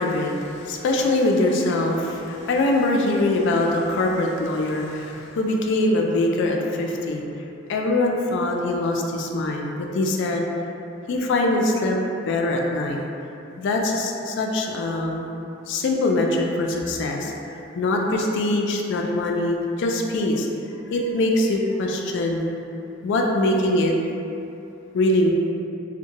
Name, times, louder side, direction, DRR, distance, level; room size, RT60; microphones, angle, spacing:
voice 1, 0.0-7.3 7.7-10.5 11.1-12.0 12.3-13.0 13.6-15.3 15.7-20.5 20.9-22.4 23.0-23.9 24.9-25.3, left 2 dB, 65° left, 1 dB, 0.3 m, -23 dB
2.6 x 2.1 x 2.8 m, 2.8 s
head